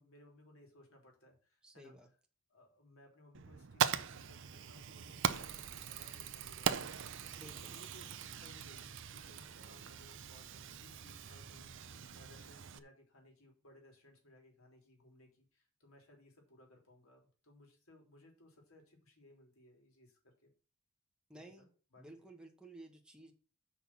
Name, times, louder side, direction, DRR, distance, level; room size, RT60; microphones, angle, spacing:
voice 1, 0.0-1.9 2.5-4.4 4.7-6.9 7.5-20.5 21.3-21.7 21.9-22.0, left 1 dB, 90° left, 1 dB, 3.5 m, -62 dB
voice 2, 1.6-2.1 7.4-7.8 21.3-21.7 22.0-23.3, right 1 dB, 5° right, 2 dB, 1.7 m, -54 dB
Fire, 3.3-12.8, right 7 dB, 65° right, 0.7 m, -40 dB
Bicycle / Mechanisms, 5.2-10.7, right 10 dB, 85° right, 1.0 m, -52 dB
6.7 x 5.8 x 6.1 m, 0.38 s
head